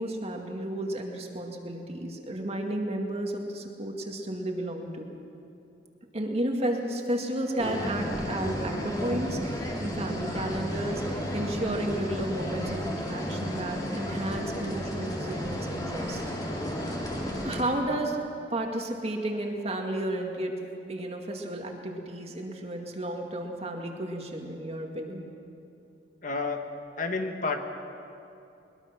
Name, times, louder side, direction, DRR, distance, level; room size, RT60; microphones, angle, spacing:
voice 1, 0.0-5.1 6.1-16.3 17.4-18.2 18.5-20.6 20.9-25.3, right 1 dB, 35° right, 2 dB, 2.2 m, -32 dB
sound 1, 7.6-17.6, equal, 20° left, 2.7 m, -33 dB
voice 2, 26.2-26.6 27.0-27.6, left 3 dB, 45° left, 5 dB, 1.5 m, -30 dB
22.0 x 22.0 x 6.1 m, 2.8 s
head